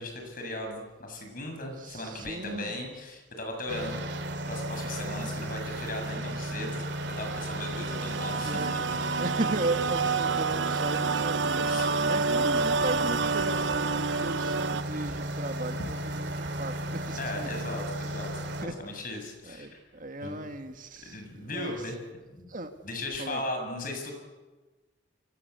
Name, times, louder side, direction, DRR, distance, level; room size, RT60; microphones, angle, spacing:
voice 1, 0.0-4.0 4.5-6.9 7.2-9.0 11.6-11.9 17.2-19.8 20.2-20.4 21.0-22.0 22.3-22.5 22.8-24.1, left 2 dB, 50° left, 4 dB, 7.6 m, -37 dB
voice 2, 1.8-2.8 7.7-7.9 8.4-8.8 9.2-11.7 12.0-17.5 18.6-18.8 19.4-21.8 22.5-22.7 23.2-23.4, right 2 dB, 45° right, 6 dB, 2.0 m, -36 dB
sound 1, 3.7-18.7, right 1 dB, 70° right, 2.9 m, -35 dB
sound 2, 7.0-14.8, right 4 dB, 85° right, 0.9 m, -29 dB
28.5 x 24.0 x 8.3 m, 1.2 s
head